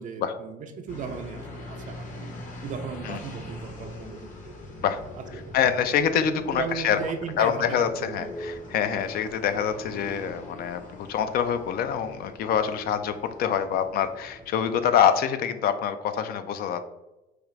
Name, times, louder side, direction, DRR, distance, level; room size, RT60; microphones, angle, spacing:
voice 1, 0.0-4.6 5.1-5.7 6.1-8.3 8.7-8.9, right 6 dB, 50° right, 6 dB, 0.4 m, -37 dB
sound 1, 0.9-14.8, left 1 dB, 50° left, 0.9 m, -42 dB
voice 2, 5.5-7.0 7.4-16.9, left 8 dB, 65° left, 10 dB, 0.4 m, -25 dB
4.7 x 2.4 x 3.0 m, 0.99 s
cardioid pair, 110°, 17 cm